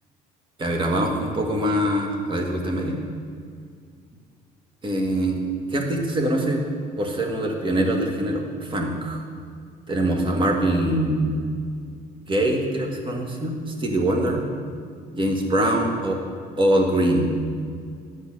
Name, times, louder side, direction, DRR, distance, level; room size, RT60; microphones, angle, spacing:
voice 1, 0.6-2.9 4.8-5.4 5.7-6.6 7.0-9.2 9.9-11.4 12.3-14.4 15.1-16.2 16.6-17.3, right 1 dB, 30° right, 1 dB, 1.7 m, -23 dB
10.5 x 5.1 x 7.6 m, 2.2 s
cardioid pair, 110°, 17 cm